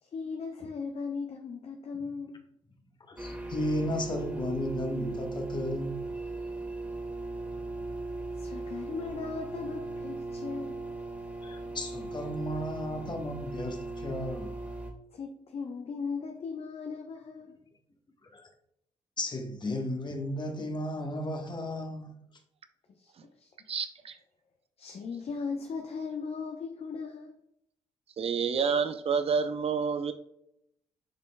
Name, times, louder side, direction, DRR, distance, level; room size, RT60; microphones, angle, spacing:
voice 1, 0.0-2.5 8.3-10.9 15.1-17.6 23.0-23.5 24.8-27.4, left 5 dB, 50° left, 0.9 m, -38 dB
voice 2, 3.1-6.2 11.4-14.5 18.2-18.5 19.2-22.2, left 1 dB, 35° left, 1.3 m, -34 dB
sound 1, 3.2-14.9, right 2 dB, 10° right, 1.7 m, -38 dB
voice 3, 23.7-24.2 28.2-30.1, right 6 dB, 50° right, 0.7 m, -28 dB
8.0 x 5.2 x 2.3 m
supercardioid pair, 55°, 13 cm